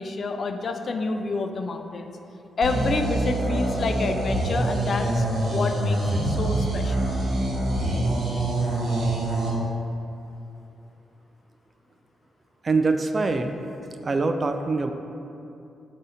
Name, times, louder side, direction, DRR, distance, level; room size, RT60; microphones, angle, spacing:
voice 1, 0.0-2.1 2.6-5.3 5.5-7.1, left 3 dB, 55° left, 5 dB, 0.3 m, -28 dB
sound 1, 2.6-9.5, right 1 dB, 75° right, 1.4 m, -25 dB
voice 2, 12.6-13.6 14.0-14.9, right 3 dB, 45° right, 6 dB, 0.3 m, -24 dB
4.1 x 2.7 x 4.8 m, 2.8 s
supercardioid pair, 55°, 0 cm